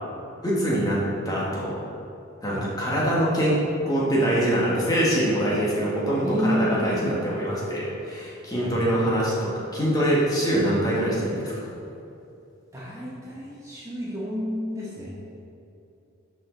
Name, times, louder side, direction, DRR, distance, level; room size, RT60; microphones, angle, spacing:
voice 1, 0.4-1.0 1.2-1.7 2.4-3.5 3.8-11.5, right 1 dB, 20° left, -6 dB, 1.7 m, -24 dB
voice 2, 6.2-7.2 8.6-8.7 12.7-15.1, equal, 15° right, -7 dB, 1.3 m, -29 dB
10.5 x 5.1 x 4.0 m, 2.8 s
head